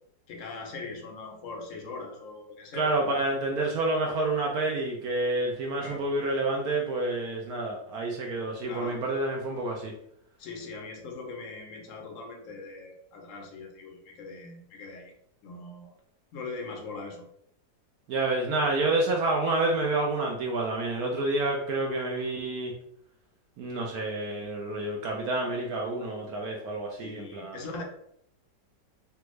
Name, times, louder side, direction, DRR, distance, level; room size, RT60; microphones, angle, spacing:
voice 1, 0.3-3.0 5.8-6.0 8.7-9.0 10.4-15.1 15.4-15.9 16.3-17.3 27.0-27.8, left 3 dB, 65° left, 1 dB, 0.8 m, -41 dB
voice 2, 2.7-9.9 18.1-22.7 23.6-27.6, right 2 dB, 70° right, 0 dB, 0.9 m, -28 dB
3.4 x 2.3 x 3.0 m, 0.71 s
omnidirectional pair, 2.0 m